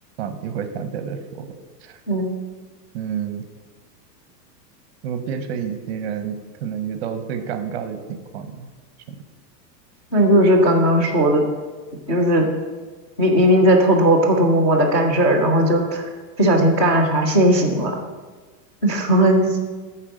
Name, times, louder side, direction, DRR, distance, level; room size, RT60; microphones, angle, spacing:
voice 1, 0.2-1.5 1.8-2.0 2.9-3.5 5.0-8.7 9.1-9.2, right 7 dB, 40° right, 9 dB, 0.7 m, -29 dB
voice 2, 10.1-11.4 12.1-12.5 13.2-16.0 16.4-17.9 18.8-19.6, right 1 dB, 20° left, -4 dB, 0.4 m, -17 dB
8.8 x 4.3 x 6.2 m, 1.4 s
supercardioid pair, 170°, 48 cm